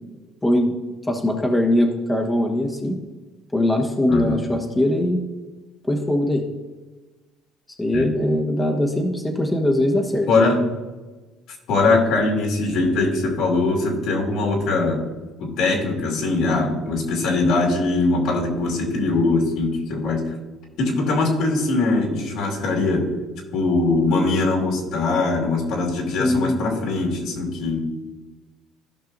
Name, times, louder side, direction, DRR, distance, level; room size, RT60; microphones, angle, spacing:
voice 1, 0.4-0.7 1.0-3.0 3.5-5.2 5.9-6.4 7.8-10.3 26.2-26.6, left 1 dB, 10° left, 0 dB, 1.4 m, -21 dB
voice 2, 4.1-4.4 7.9-8.1 10.3-10.6 11.7-15.0 15.4-20.3 20.8-23.1 23.5-27.9, left 3 dB, 70° left, -1 dB, 2.5 m, -21 dB
15.5 x 5.5 x 2.7 m, 1.3 s
supercardioid pair, 100°, 0 cm